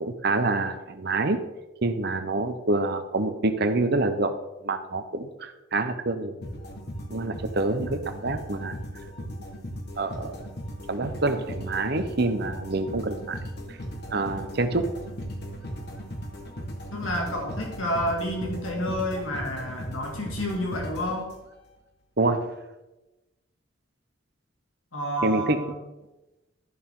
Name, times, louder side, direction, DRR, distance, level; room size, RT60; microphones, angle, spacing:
voice 1, 0.0-1.4 1.8-4.3 4.6-6.4 7.1-8.8 10.0-10.4 10.9-13.4 14.1-14.9 22.2-22.5 25.2-25.6, right 2 dB, 55° right, 9 dB, 0.9 m, -26 dB
sound 1, 6.4-21.7, equal, 55° left, 1.5 m, -37 dB
voice 2, 16.9-21.3 24.9-25.8, equal, 85° left, 0 dB, 2.4 m, -29 dB
12.0 x 7.0 x 3.8 m, 1.0 s
head